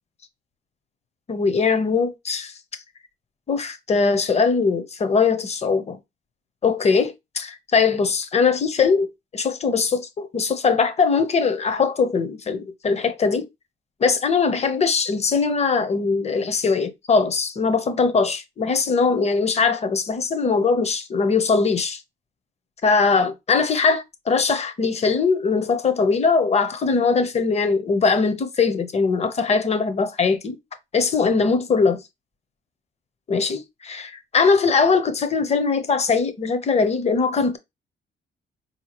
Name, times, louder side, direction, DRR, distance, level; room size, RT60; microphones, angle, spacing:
voice 1, 1.3-2.5 3.5-6.0 6.6-13.5 14.0-22.0 22.8-30.6 30.9-32.0 33.3-37.6, left 5 dB, 35° left, 0.7 m, -21 dB
4.4 x 2.8 x 2.9 m
cardioid pair, 100°, 20 cm